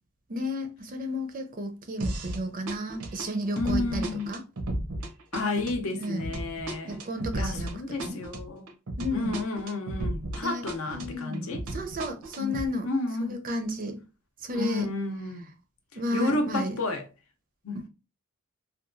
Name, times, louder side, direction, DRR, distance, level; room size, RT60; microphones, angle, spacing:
voice 1, 0.3-4.4 6.0-6.3 6.9-7.7 8.0-8.2 9.0-9.4 10.4-12.9 13.2-14.0 14.4-14.9 16.0-16.7, left 1 dB, 40° right, 0.5 m, -32 dB
sound 1, 2.0-2.4 2.7-10.4 10.7-12.7, right 1 dB, 85° right, 0.7 m, -34 dB
voice 2, 3.6-4.3 5.3-7.0 7.3-8.7 9.1-11.6 12.4-12.5 12.8-13.4 14.5-15.5 16.1-17.1 17.6-17.8, left 2 dB, 70° left, 0.6 m, -31 dB
2.8 x 2.2 x 2.5 m
head